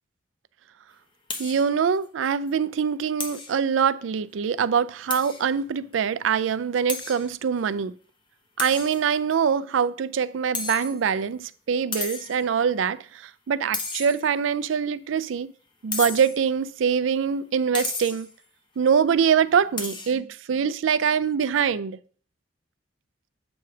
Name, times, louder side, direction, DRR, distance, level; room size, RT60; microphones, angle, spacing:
sound 1, 1.3-1.7 2.0-2.1 2.5-2.6 3.2-3.6 5.1-5.5 5.9-6.0 6.9-7.3 8.6-9.3 10.5-11.3 11.9-12.4 13.7-14.5 15.9-16.5 17.7-18.3 19.8-20.1, left 4 dB, 25° left, 0.9 m, -33 dB
voice 1, 1.4-7.9 8.6-13.0 13.5-15.5 15.8-18.3 18.8-22.0, right 7 dB, 90° right, 0.4 m, -24 dB
8.0 x 3.3 x 5.7 m
head